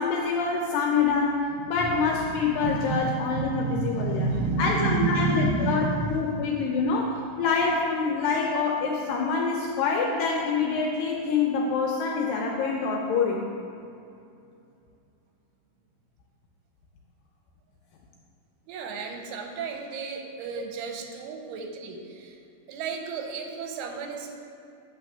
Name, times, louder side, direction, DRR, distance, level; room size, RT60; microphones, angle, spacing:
voice 1, 0.0-4.3 4.6-7.1 7.4-13.4 20.6-20.7, left 4 dB, 80° left, 0 dB, 2.0 m, -26 dB
voice 2, 1.5-1.9 2.3-6.3 18.7-22.4 22.7-24.4, right 3 dB, 90° right, 3 dB, 2.7 m, -30 dB
8.3 x 4.0 x 6.7 m, 2.6 s
omnidirectional pair, 4.6 m